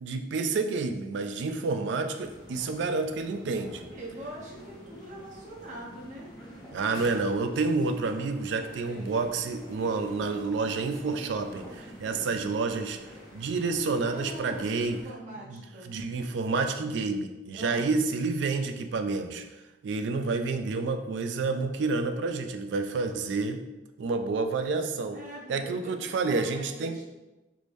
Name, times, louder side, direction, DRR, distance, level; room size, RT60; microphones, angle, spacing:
voice 1, 0.0-3.9 6.7-13.0 13.3-15.0 15.5-19.4 19.8-23.6 24.0-25.2 25.5-27.0, right 3 dB, 65° right, 7 dB, 0.3 m, -29 dB
sound 1, 2.2-15.0, equal, 25° left, 0.6 m, -47 dB
voice 2, 3.7-6.3 12.1-12.4 14.0-15.9 17.5-17.9 25.1-27.1, right 1 dB, 40° right, -3 dB, 0.8 m, -43 dB
3.5 x 3.1 x 2.5 m, 1.1 s
head